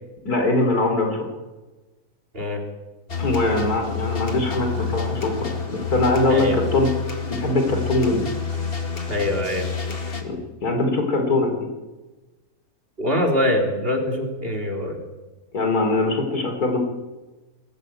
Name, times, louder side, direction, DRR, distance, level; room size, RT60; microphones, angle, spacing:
voice 1, 0.2-1.3 3.2-6.9 7.3-8.3 10.2-11.7 15.5-16.8, left 2 dB, 80° left, 3 dB, 4.1 m, -22 dB
sound 1, 3.1-10.2, left 5 dB, 40° left, 2.2 m, -29 dB
voice 2, 6.3-6.6 9.1-9.7 13.0-15.0, left 1 dB, 35° right, 2 dB, 3.3 m, -23 dB
21.5 x 14.0 x 8.9 m, 1.2 s
omnidirectional pair, 1.6 m